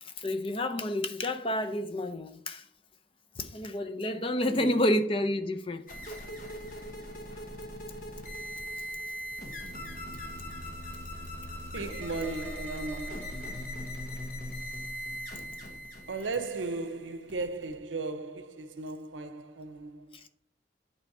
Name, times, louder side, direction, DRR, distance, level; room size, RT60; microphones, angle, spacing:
voice 1, 0.0-2.7 3.4-5.8 7.3-7.4 20.1-20.2, left 1 dB, 30° left, 0.5 m, -30 dB
voice 2, 4.5-4.8 11.7-13.7 16.1-20.3, right 3 dB, 90° right, 0.7 m, -36 dB
sound 1, 5.9-17.8, equal, 45° left, 1.0 m, -40 dB
8.7 x 3.4 x 5.4 m
head